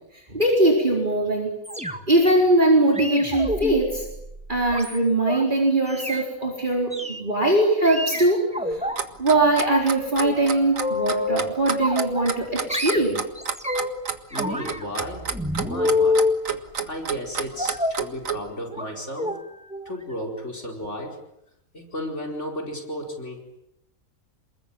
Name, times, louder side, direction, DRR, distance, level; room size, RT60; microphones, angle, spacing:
voice 1, 0.1-1.5 2.1-4.0 4.5-8.4 8.7-8.8 9.2-13.2, right 2 dB, 35° right, -1 dB, 4.7 m, -21 dB
sound 1, 1.6-2.3 2.9-5.4 5.9-6.2 6.9-7.2 7.8-9.0 9.3-9.9 10.2-11.4 11.8-12.4 12.7-14.0 14.3-16.4 17.6-18.0 18.7-18.9 19.2-19.4 19.7-19.9 20.2-20.3, left 2 dB, 5° right, 2.1 m, -27 dB
Clock, 8.7-18.4, right 6 dB, 65° right, 2.1 m, -29 dB
voice 2, 14.3-16.3 16.8-19.4 19.8-21.2 21.7-23.4, left 1 dB, 55° left, 1 dB, 5.1 m, -34 dB
28.5 x 21.0 x 9.0 m, 0.82 s
omnidirectional pair, 1.5 m